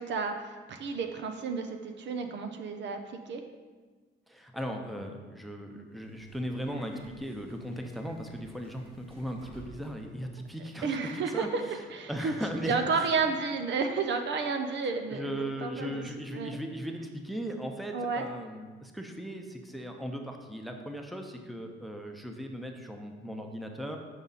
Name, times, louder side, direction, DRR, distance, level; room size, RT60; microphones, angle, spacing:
voice 1, 0.0-3.4 10.8-12.3 12.6-16.0 16.3-16.6 17.9-18.3, right 4 dB, 65° right, 6 dB, 0.7 m, -31 dB
voice 2, 4.3-11.5 12.1-13.2 14.9-24.0, equal, ahead, 3 dB, 0.7 m, -38 dB
Subway metro underground, 5.9-10.1, right 1 dB, 30° right, 1.7 m, -52 dB
7.1 x 4.9 x 4.1 m, 1.4 s
cardioid pair, 90°, 20 cm